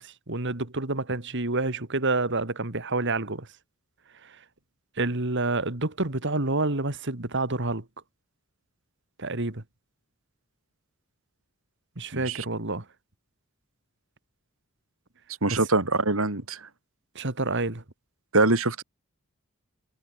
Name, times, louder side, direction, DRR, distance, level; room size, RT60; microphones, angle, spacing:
voice 1, 0.0-3.5 4.2-4.4 5.0-7.9 9.2-9.6 12.0-12.8 15.5-15.6 17.1-17.8, right 2 dB, 60° right, 2.6 m, -28 dB
voice 2, 12.1-12.4 15.4-16.6 18.3-18.8, right 2 dB, 75° right, 3.2 m, -23 dB
head